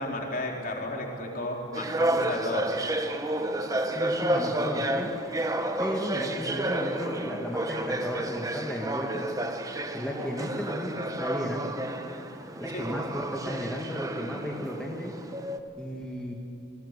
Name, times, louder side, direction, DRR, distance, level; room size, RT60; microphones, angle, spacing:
voice 1, 0.0-2.7 12.7-12.9, left 1 dB, 50° left, 0 dB, 4.3 m, -33 dB
sound 1, 1.7-15.6, right 1 dB, 20° right, 1.2 m, -31 dB
voice 2, 3.9-5.1 5.8-9.3 9.9-11.7 12.6-15.1 15.8-16.3, equal, 5° left, -2 dB, 2.3 m, -34 dB
29.5 x 21.0 x 8.5 m, 2.8 s
head